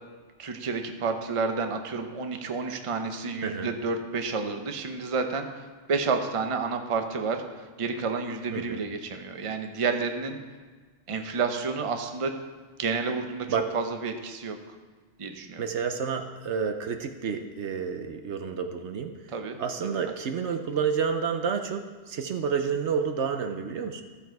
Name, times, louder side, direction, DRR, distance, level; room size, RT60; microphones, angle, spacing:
voice 1, 0.4-7.4 7.8-10.4 11.1-12.3 12.8-13.5 13.7-14.6 15.2-15.6 19.3-19.6, right 4 dB, 30° right, 5 dB, 0.7 m, -30 dB
voice 2, 8.5-8.8 13.5-13.8 15.6-19.1 19.6-24.0, right 6 dB, 65° right, 6 dB, 1.0 m, -29 dB
14.0 x 7.0 x 4.6 m, 1.4 s
omnidirectional pair, 1.3 m